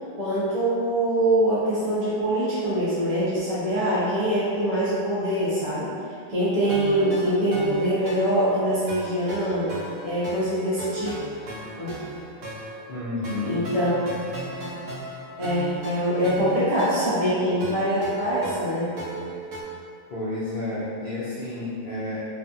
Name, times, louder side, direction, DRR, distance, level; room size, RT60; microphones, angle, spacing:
voice 1, 0.2-5.9 6.3-9.7 10.0-11.1 11.6-11.9 13.4-14.2 15.4-18.9, right 1 dB, 40° right, -13 dB, 0.6 m, -24 dB
sound 1, 6.7-19.6, right 2 dB, 90° right, 1.1 m, -37 dB
voice 2, 12.9-13.6 20.1-22.2, left 2 dB, 80° left, -11 dB, 0.4 m, -30 dB
2.6 x 2.4 x 2.5 m, 2.4 s
omnidirectional pair, 1.4 m